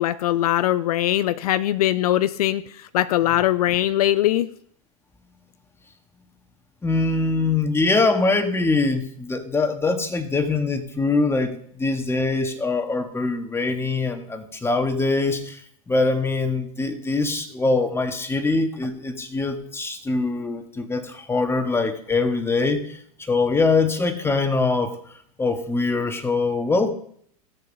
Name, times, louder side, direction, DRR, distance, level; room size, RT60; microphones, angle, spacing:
voice 1, 0.0-4.5, left 13 dB, 75° left, 14 dB, 0.5 m, -21 dB
voice 2, 6.8-15.6 15.9-23.0 23.3-24.9 25.4-26.9, left 3 dB, 10° left, 5 dB, 1.7 m, -23 dB
15.0 x 6.6 x 5.4 m, 0.63 s
hypercardioid pair, 95°, 20 cm